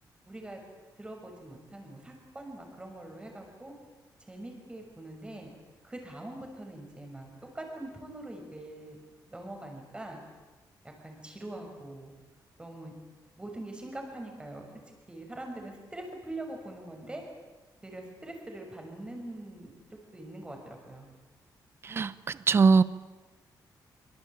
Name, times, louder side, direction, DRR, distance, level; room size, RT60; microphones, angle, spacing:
voice 1, 0.3-0.6 1.0-3.8 4.3-5.5 5.8-9.0 9.3-10.2 10.8-12.1 12.6-12.9 13.4-14.7 15.1-17.2 17.8-19.7 20.1-21.1, right 1 dB, 15° right, 3 dB, 6.2 m, -43 dB
voice 2, 21.8-22.8, right 4 dB, 30° right, 17 dB, 0.8 m, -22 dB
25.5 x 25.5 x 9.0 m, 1.2 s
wide cardioid pair, 170°, 8 cm